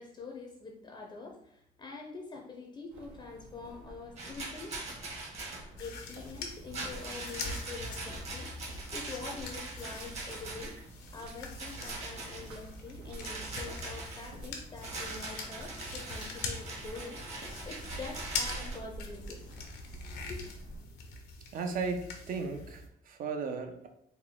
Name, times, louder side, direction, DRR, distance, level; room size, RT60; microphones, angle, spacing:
voice 1, 0.0-4.7 5.8-10.7 11.1-19.5 20.1-20.4, left 4 dB, 25° left, 2 dB, 0.6 m, -45 dB
sound 1, 2.9-20.8, right 1 dB, 90° right, 1.2 m, -49 dB
Rattle, 4.2-5.7 6.7-10.8 11.6-12.4 13.2-14.3 14.8-18.8, right 2 dB, 40° right, 1.1 m, -42 dB
sound 2, 5.8-22.9, left 3 dB, 80° left, 0.8 m, -43 dB
voice 2, 21.5-23.9, right 4 dB, 55° right, 6 dB, 0.6 m, -35 dB
4.3 x 2.2 x 3.6 m, 0.71 s
cardioid pair, 110°, 17 cm